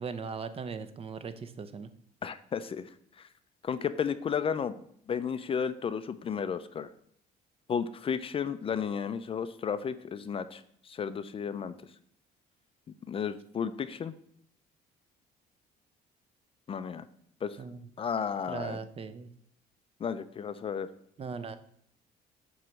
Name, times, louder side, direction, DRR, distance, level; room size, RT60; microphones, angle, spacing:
voice 1, 0.0-1.9 17.6-17.9 18.5-19.3 21.2-21.6, right 5 dB, 35° right, 10 dB, 0.6 m, -39 dB
voice 2, 2.2-3.3 3.6-4.8 5.1-6.9 7.7-11.7 13.1-14.1 16.7-17.1 17.4-17.6 18.0-18.8 20.0-20.9, left 7 dB, 35° left, 12 dB, 0.4 m, -33 dB
7.5 x 3.1 x 6.2 m, 0.66 s
cardioid pair, 110°, 17 cm